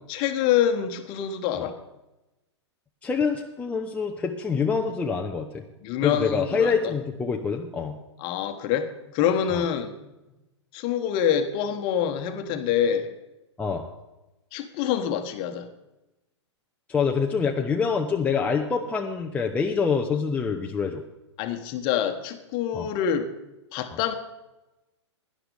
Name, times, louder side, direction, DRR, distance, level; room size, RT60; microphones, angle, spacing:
voice 1, 0.1-1.8 5.8-6.9 8.2-9.9 10.7-13.1 14.5-15.7 21.4-23.3 23.7-24.1, left 9 dB, 30° left, 8 dB, 1.3 m, -26 dB
voice 2, 3.0-5.6 6.0-8.0 9.5-9.6 13.6-13.9 16.9-21.0 22.7-22.9, left 5 dB, 10° left, 1 dB, 0.7 m, -26 dB
17.0 x 11.0 x 3.5 m, 0.99 s
figure-of-eight pair, 110°, 15 cm